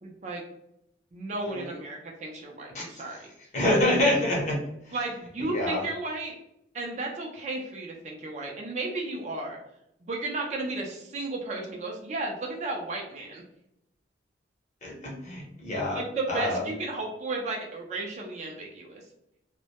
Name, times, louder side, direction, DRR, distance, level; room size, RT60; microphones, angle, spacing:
voice 1, 0.0-0.4 1.1-3.2 4.9-6.3 6.7-9.6 10.0-13.4 15.9-19.0, right 2 dB, 35° right, 0 dB, 0.4 m, -34 dB
voice 2, 2.7-3.2 3.5-4.6 4.9-5.0 5.4-5.8 14.8-16.0 16.3-16.6, left 1 dB, 40° left, -3 dB, 0.7 m, -27 dB
2.1 x 2.1 x 2.8 m, 0.79 s
head